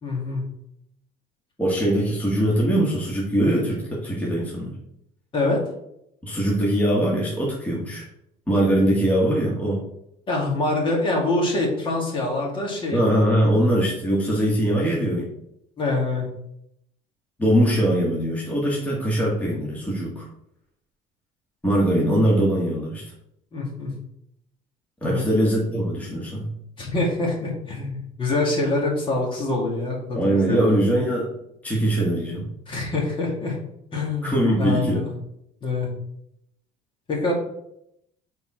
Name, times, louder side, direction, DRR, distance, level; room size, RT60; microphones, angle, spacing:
voice 1, 0.0-0.4 5.3-5.6 10.3-13.1 13.5-13.7 15.8-16.3 23.5-23.9 25.0-25.3 26.8-30.8 32.7-33.6 33.9-34.3 34.6-35.1 35.6-35.9 37.1-37.3, left 2 dB, 35° left, -1 dB, 2.2 m, -25 dB
voice 2, 1.6-4.7 6.2-8.1 8.5-9.8 12.9-15.3 17.4-20.3 21.6-23.0 25.0-26.5 30.1-31.3 31.6-32.5 34.2-35.1, right 1 dB, 10° left, -5 dB, 1.8 m, -22 dB
6.9 x 4.3 x 4.9 m, 0.77 s
cardioid pair, 140°, 15 cm